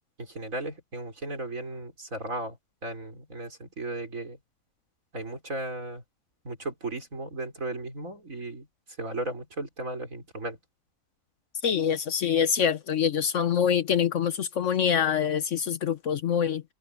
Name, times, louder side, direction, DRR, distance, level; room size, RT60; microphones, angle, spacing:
voice 1, 0.2-2.6 2.8-4.4 5.1-6.0 6.4-8.7 9.0-10.6, right 2 dB, 65° right, 5.3 m, -35 dB
voice 2, 11.6-16.6, left 8 dB, 60° left, 1.1 m, -25 dB
open air
omnidirectional pair, 1.5 m